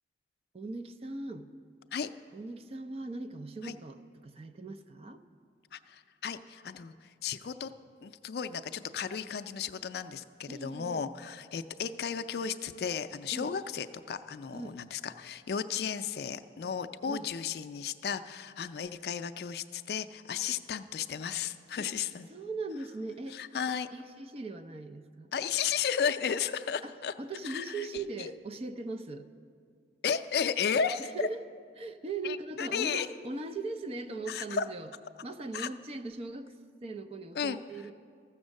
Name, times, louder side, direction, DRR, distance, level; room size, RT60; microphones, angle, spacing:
voice 1, 0.5-1.5 2.3-5.2 10.5-11.1 13.3-13.5 14.5-14.8 17.1-17.3 21.8-21.9 22.3-23.4 23.9-25.3 26.8-26.9 27.2-29.3 31.0-31.5 31.8-34.9 35.2-36.5 36.8-37.9, right 3 dB, 35° right, 8 dB, 0.4 m, -39 dB
voice 2, 5.7-7.7 8.0-22.3 23.3-23.9 25.3-27.1 27.4-28.3 30.0-31.3 32.2-33.1 34.3-34.7 35.5-35.7 37.3-37.6, left 7 dB, 60° left, 10 dB, 0.4 m, -34 dB
14.0 x 7.1 x 6.4 m, 2.2 s
head